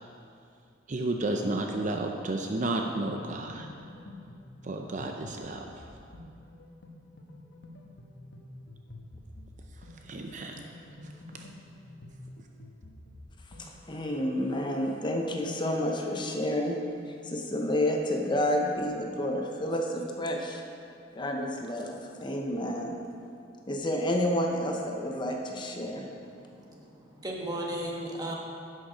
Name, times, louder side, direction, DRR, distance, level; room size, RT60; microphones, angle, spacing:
voice 1, 0.9-3.7 4.6-5.8 10.0-10.7, right 2 dB, 40° right, 2 dB, 0.5 m, -32 dB
sound 1, 3.1-13.7, left 1 dB, 70° left, 1.1 m, -49 dB
voice 2, 13.6-16.8 17.2-20.6 21.2-22.9 23.7-26.1, left 1 dB, 25° left, 2 dB, 0.7 m, -30 dB
voice 3, 26.2-28.3, right 1 dB, 20° right, -2 dB, 1.3 m, -36 dB
11.0 x 6.5 x 5.0 m, 2.5 s
head